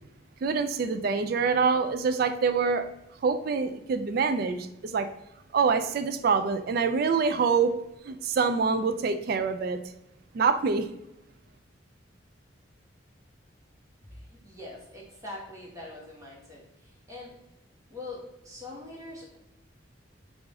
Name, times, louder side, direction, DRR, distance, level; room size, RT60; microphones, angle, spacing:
voice 1, 0.4-2.9 3.2-5.1 5.5-7.7 8.0-9.8 10.3-10.9, right 5 dB, 55° right, 8 dB, 0.3 m, -25 dB
voice 2, 14.1-17.3 17.9-19.4, left 2 dB, 15° right, -5 dB, 1.3 m, -43 dB
4.7 x 2.5 x 3.6 m, 0.85 s
head